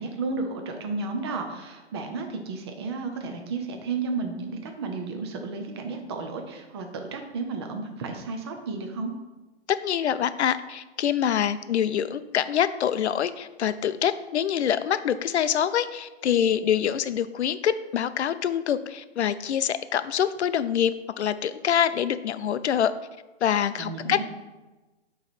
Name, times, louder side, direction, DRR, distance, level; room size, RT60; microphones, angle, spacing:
voice 1, 0.0-9.1 23.8-24.2, right 4 dB, 25° right, 4 dB, 0.5 m, -33 dB
voice 2, 9.7-22.9 23.4-24.2, left 9 dB, 80° left, 13 dB, 0.5 m, -25 dB
8.0 x 3.1 x 4.2 m, 1.1 s
hypercardioid pair, 150°, 33 cm